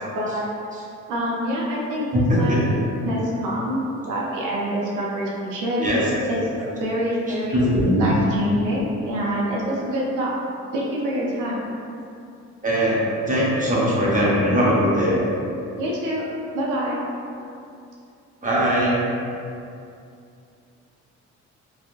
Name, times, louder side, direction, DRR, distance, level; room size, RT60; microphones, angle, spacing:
voice 1, 0.1-0.5 1.1-2.7 3.0-5.9 6.3-7.6 8.0-10.3 10.7-11.5 15.8-16.2 16.5-17.0, equal, 85° right, -5 dB, 0.7 m, -26 dB
voice 2, 2.1-2.8 5.8-6.1 7.5-8.1 12.6-15.2 18.4-19.0, equal, 25° right, -6 dB, 0.8 m, -20 dB
3.4 x 2.3 x 2.5 m, 2.5 s
cardioid pair, 90°, 30 cm